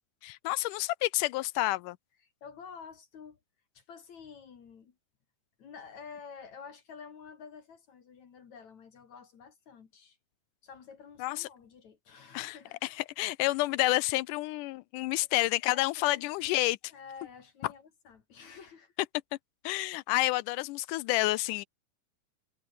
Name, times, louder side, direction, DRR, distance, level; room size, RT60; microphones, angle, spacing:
voice 1, 0.2-2.0 11.2-11.5 12.3-16.8 19.6-21.7, left 19 dB, 80° left, 2.1 m, -29 dB
voice 2, 2.2-3.4 3.8-5.0 5.6-10.2 10.6-12.8 13.5-13.6 15.6-16.2 16.9-18.9, left 6 dB, 60° left, 3.7 m, -49 dB
omnidirectional pair, 3.8 m